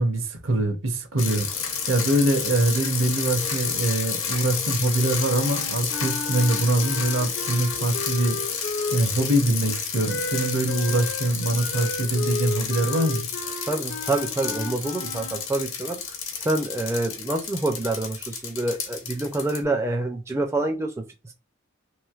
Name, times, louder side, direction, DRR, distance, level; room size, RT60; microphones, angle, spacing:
voice 1, 0.0-1.5 1.9-8.4 8.9-13.3, right 1 dB, 70° right, 0.7 m, -23 dB
sound 1, 1.2-19.6, left 6 dB, 70° left, 0.9 m, -31 dB
Wind instrument woodwind instrument, 5.2-9.3 10.1-15.5, left 3 dB, 50° left, 0.4 m, -34 dB
voice 2, 13.7-16.0 16.4-21.3, right 2 dB, 15° right, 0.3 m, -27 dB
3.1 x 3.0 x 2.3 m
head